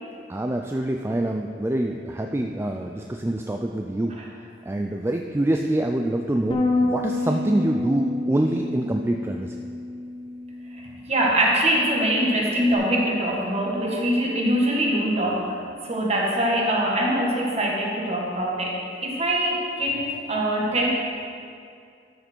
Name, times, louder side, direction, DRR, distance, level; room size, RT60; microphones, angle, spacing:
voice 1, 0.3-4.2 4.7-9.6, right 1 dB, 15° right, 3 dB, 0.3 m, -25 dB
Bass guitar, 6.5-12.8, left 2 dB, 30° left, 0.9 m, -29 dB
voice 2, 10.7-15.4 15.8-20.9, right 1 dB, 35° right, -2 dB, 1.7 m, -23 dB
12.5 x 6.6 x 4.5 m, 2.3 s
head